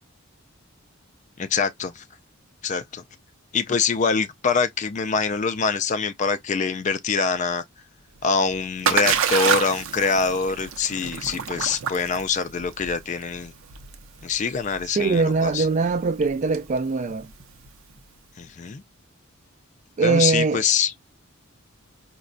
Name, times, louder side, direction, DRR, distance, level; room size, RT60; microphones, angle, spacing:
voice 1, 1.4-2.0 2.6-3.0 3.5-7.6 8.2-13.5 14.2-15.7 18.4-18.8 20.0-20.9, left 5 dB, 35° left, 0.3 m, -24 dB
Splash splatter, 8.1-18.0, right 7 dB, 75° right, 0.6 m, -29 dB
voice 2, 15.0-17.3 20.0-20.6, right 4 dB, 35° right, 0.3 m, -22 dB
5.0 x 2.2 x 2.5 m
head